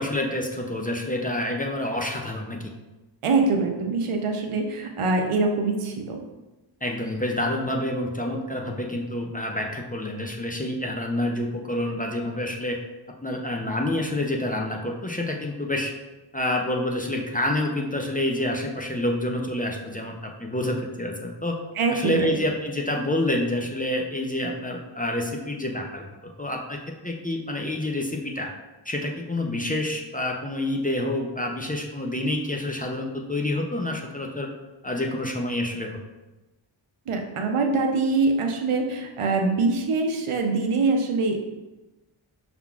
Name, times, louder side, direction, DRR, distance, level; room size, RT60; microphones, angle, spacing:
voice 1, 0.0-2.7 6.8-12.8 13.2-15.9 16.3-21.6 21.9-26.1 26.4-26.8 27.0-28.5 28.9-34.5 34.8-36.0, left 1 dB, 20° left, 1 dB, 0.4 m, -28 dB
voice 2, 3.2-6.2 21.8-22.3 37.1-41.4, right 3 dB, 90° right, 3 dB, 0.7 m, -24 dB
5.6 x 3.7 x 2.3 m, 1.1 s
wide cardioid pair, 95°, 49 cm